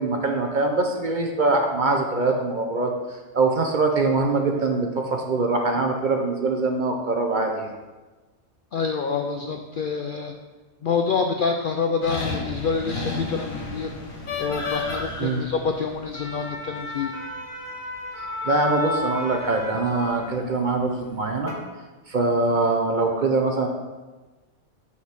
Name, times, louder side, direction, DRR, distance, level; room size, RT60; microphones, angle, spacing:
voice 1, 0.0-2.9 3.3-7.7 15.2-15.4 18.4-21.5 22.1-23.7, right 3 dB, 45° right, 3 dB, 0.7 m, -23 dB
voice 2, 8.7-10.3 10.8-13.9 14.4-17.1, left 5 dB, 65° left, 4 dB, 0.5 m, -27 dB
sound 1, 12.0-20.5 21.2-21.5, left 3 dB, 90° left, 1.8 m, -32 dB
5.8 x 4.8 x 5.9 m, 1.2 s
omnidirectional pair, 1.4 m